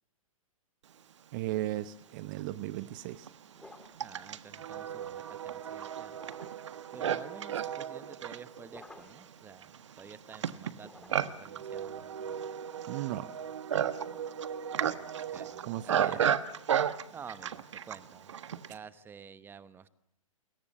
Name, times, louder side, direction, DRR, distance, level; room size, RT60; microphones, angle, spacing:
voice 1, 1.3-3.3 12.9-13.3 15.6-16.2, right 15 dB, 35° right, 15 dB, 1.0 m, -36 dB
Livestock farm animals working animals, 2.0-2.1 2.8-18.8, right 8 dB, 55° right, 1.4 m, -34 dB
sound 1, 3.6-4.1 6.1-6.8 8.7-9.3 10.8-11.5, left 2 dB, 5° left, 2.0 m, -53 dB
voice 2, 4.0-6.2 6.9-12.4 14.9-16.2 17.1-19.9, right 6 dB, 10° right, 15 dB, 1.1 m, -50 dB
29.0 x 22.5 x 7.1 m, 0.75 s
figure-of-eight pair, 115°, 18 cm